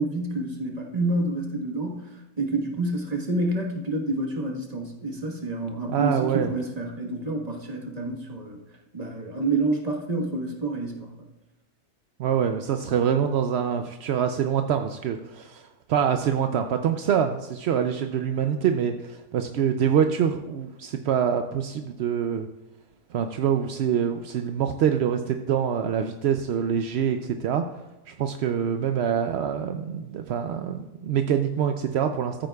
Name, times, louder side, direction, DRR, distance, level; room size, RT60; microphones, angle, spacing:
voice 1, 0.0-8.6 8.9-11.3, right 2 dB, 30° right, 1 dB, 1.3 m, -28 dB
voice 2, 5.9-6.5 12.2-22.5 23.1-27.6 28.1-32.5, right 8 dB, 65° right, 6 dB, 0.6 m, -25 dB
14.5 x 8.9 x 2.3 m, 1.1 s
omnidirectional pair, 1.5 m